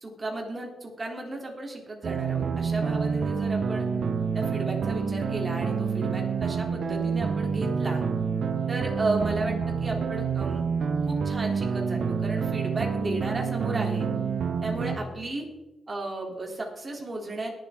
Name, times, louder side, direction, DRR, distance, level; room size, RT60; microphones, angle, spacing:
voice 1, 0.0-3.8 4.3-8.0 8.7-10.6 11.0-14.1 14.6-15.4 15.9-17.5, right 2 dB, 35° right, 1 dB, 3.2 m, -34 dB
sound 1, 2.0-15.0, right 6 dB, 65° right, 1.0 m, -28 dB
21.0 x 7.7 x 3.7 m, 1.1 s
cardioid pair, 95°, 0 cm